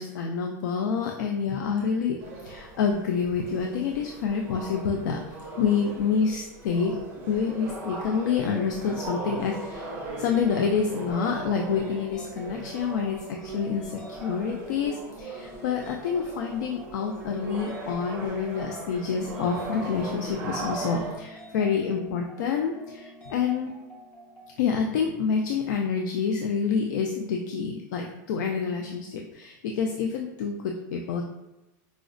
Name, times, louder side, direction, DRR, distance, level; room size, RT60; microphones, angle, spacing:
voice 1, 0.0-5.2 5.6-7.0 7.3-9.9 10.2-23.7 24.6-31.3, left 6 dB, 85° left, 2 dB, 0.4 m, -28 dB
sound 1, 2.2-21.2, right 3 dB, 20° right, 0.5 m, -38 dB
sound 2, 9.8-24.6, left 1 dB, 20° left, 0.7 m, -48 dB
4.7 x 2.1 x 2.5 m, 0.95 s
supercardioid pair, 175°, 10 cm